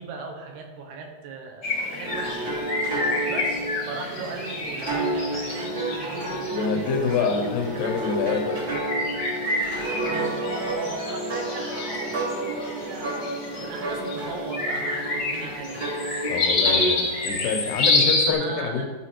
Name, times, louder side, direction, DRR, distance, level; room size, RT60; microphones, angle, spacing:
voice 1, 0.0-8.1 10.1-13.3 13.6-15.8 18.3-18.9, right 4 dB, 75° right, 2 dB, 2.9 m, -38 dB
sound 1, 1.6-18.3, left 2 dB, 45° left, 1.3 m, -28 dB
sound 2, 2.0-17.3, right 2 dB, 40° right, 1.3 m, -31 dB
voice 2, 6.5-8.6 16.3-18.9, left 5 dB, 75° left, 4 dB, 2.7 m, -26 dB
12.0 x 4.9 x 4.3 m, 1.5 s
omnidirectional pair, 5.0 m